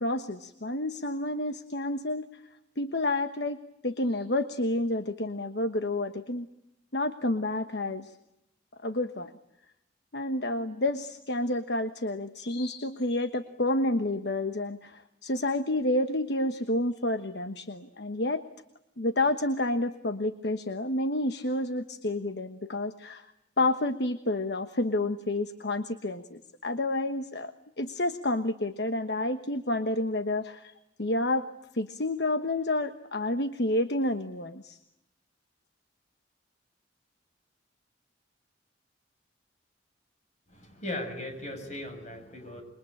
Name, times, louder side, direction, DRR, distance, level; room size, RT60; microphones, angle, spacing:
voice 1, 0.0-2.4 2.8-6.5 6.9-8.1 8.8-9.3 10.1-18.4 19.0-23.3 23.6-30.7 31.0-31.5 31.7-34.8, left 1 dB, 60° left, 8 dB, 1.2 m, -29 dB
voice 2, 40.6-42.6, left 1 dB, 40° left, 5 dB, 7.1 m, -37 dB
27.5 x 23.0 x 8.9 m, 0.82 s
head